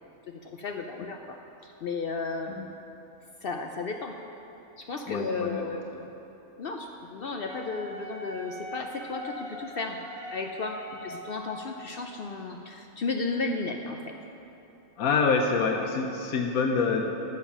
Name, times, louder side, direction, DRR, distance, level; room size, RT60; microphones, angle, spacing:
voice 1, 0.3-2.5 3.4-4.2 4.8-5.8 6.6-10.0 10.3-14.1, left 3 dB, 60° left, 4 dB, 0.6 m, -34 dB
voice 2, 5.1-6.0 15.0-17.0, left 4 dB, 80° left, 3 dB, 1.2 m, -26 dB
Wind instrument woodwind instrument, 7.5-11.7, equal, 20° right, 1.4 m, -42 dB
13.5 x 7.2 x 5.9 m, 3.0 s
omnidirectional pair, 1.5 m